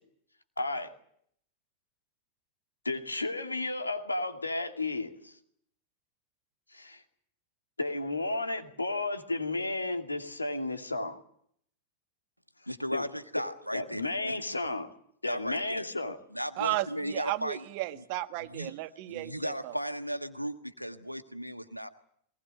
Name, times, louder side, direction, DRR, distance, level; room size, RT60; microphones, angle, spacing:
voice 1, 0.6-0.9 2.8-5.4 6.7-7.0 7.8-11.2 12.9-13.1 13.7-14.9 15.2-16.2, left 2 dB, 80° left, 5 dB, 2.5 m, -33 dB
voice 2, 12.7-14.4 15.3-15.9 16.3-17.6 18.0-18.1 18.5-18.7 19.1-21.9, equal, 90° right, 10 dB, 1.4 m, -36 dB
voice 3, 16.6-19.7, right 17 dB, 45° right, 12 dB, 1.3 m, -34 dB
22.5 x 19.5 x 9.0 m, 0.68 s
figure-of-eight pair, 90°, 0 cm